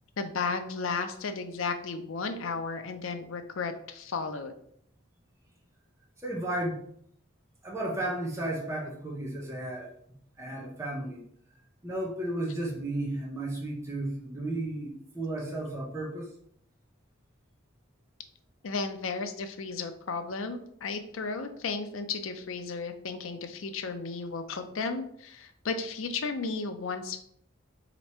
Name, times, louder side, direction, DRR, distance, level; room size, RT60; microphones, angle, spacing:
voice 1, 0.2-4.5 18.6-27.2, left 4 dB, 75° left, 7 dB, 0.5 m, -34 dB
voice 2, 6.2-6.9 7.6-9.9 10.4-11.2 11.8-16.3, right 1 dB, 15° right, -2 dB, 0.7 m, -33 dB
3.4 x 3.0 x 4.2 m, 0.66 s
head